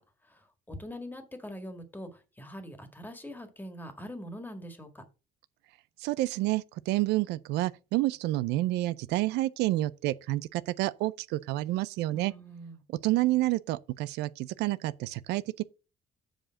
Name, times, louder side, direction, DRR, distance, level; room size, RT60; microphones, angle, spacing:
voice 1, 0.3-5.0 12.1-12.8, equal, 10° left, 1.9 m, -43 dB
voice 2, 6.0-12.3 13.0-15.6, right 17 dB, 85° right, 0.5 m, -29 dB
7.6 x 4.9 x 5.8 m
cardioid pair, 110°, 17 cm